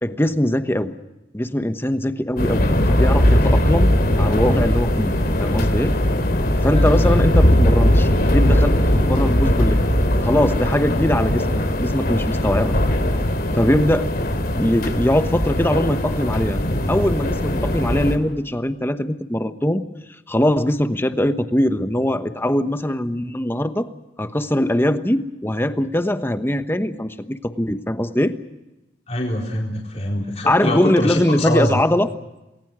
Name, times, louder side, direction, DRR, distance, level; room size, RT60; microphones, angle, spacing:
voice 1, 0.0-0.9 1.3-5.1 5.4-5.9 6.6-9.8 10.2-11.5 11.8-12.7 13.5-14.1 14.5-16.6 16.9-19.8 20.3-23.9 24.2-28.3 30.5-32.1, left 1 dB, 15° left, 9 dB, 1.1 m, -21 dB
sound 1, 2.4-18.2, left 1 dB, 55° left, 2.8 m, -19 dB
voice 2, 6.7-7.1 29.1-31.7, left 1 dB, 35° left, -1 dB, 4.2 m, -24 dB
28.0 x 20.5 x 6.2 m, 0.99 s
head